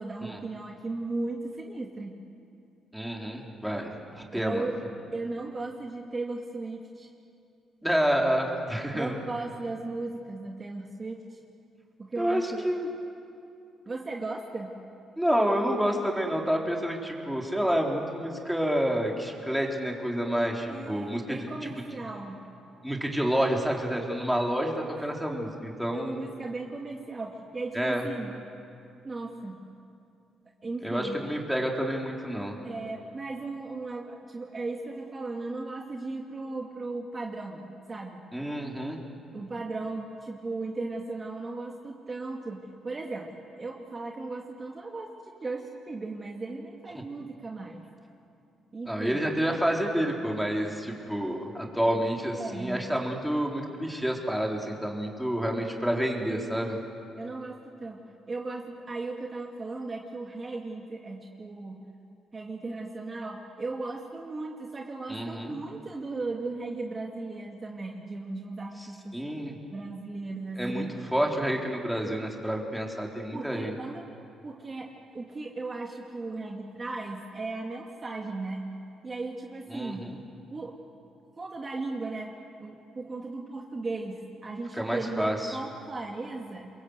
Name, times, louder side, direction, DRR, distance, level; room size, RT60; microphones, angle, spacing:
voice 1, 0.0-2.2 4.3-4.7 5.1-7.1 8.9-11.4 12.0-12.7 13.9-14.7 20.7-22.4 25.0-25.1 25.9-28.4 29.0-29.6 30.6-31.3 32.6-38.2 39.3-43.3 43.6-47.8 48.7-49.2 52.3-52.9 56.3-56.6 57.2-61.8 62.3-69.2 69.7-71.0 73.3-74.1 74.4-78.6 79.0-80.1 80.5-80.8 81.4-86.7, right 3 dB, 30° right, 1 dB, 2.3 m, -36 dB
voice 2, 2.9-4.6 7.8-9.1 12.2-12.9 15.2-21.4 22.8-24.7 25.0-26.2 27.7-28.0 30.8-32.5 38.3-39.0 48.9-56.8 65.1-65.6 69.1-69.6 70.6-73.7 79.7-80.2 84.7-85.6, equal, ahead, -1 dB, 3.9 m, -29 dB
28.5 x 22.5 x 8.2 m, 2.5 s
cardioid pair, 90°, 0 cm